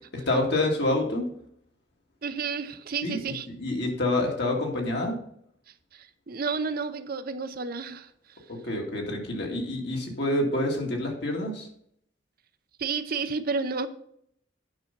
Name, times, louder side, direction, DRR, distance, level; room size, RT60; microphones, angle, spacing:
voice 1, 0.1-1.3 3.0-5.2 8.5-11.7, left 1 dB, 60° left, 2.3 m, -27 dB
voice 2, 2.2-3.5 5.9-8.4 12.8-13.9, right 5 dB, 50° right, 0.6 m, -31 dB
9.7 x 5.6 x 5.3 m
head